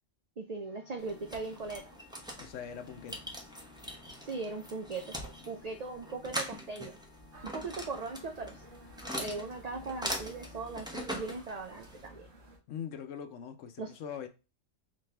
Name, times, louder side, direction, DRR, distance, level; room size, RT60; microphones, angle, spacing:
voice 1, 0.4-1.8 4.2-5.2 5.5-7.0 7.4-8.6 9.2-12.3 13.8-13.9, right 3 dB, 85° right, 0.3 m, -39 dB
Organ, 0.6-11.5, left 4 dB, 50° left, 0.4 m, -58 dB
sound 1, 1.0-12.1, equal, 5° right, 0.5 m, -42 dB
voice 2, 2.4-3.2 12.7-14.3, left 8 dB, 70° left, 1.0 m, -42 dB
sound 2, 7.3-12.6, right 1 dB, 70° right, 1.8 m, -53 dB
4.2 x 2.6 x 3.2 m
omnidirectional pair, 1.4 m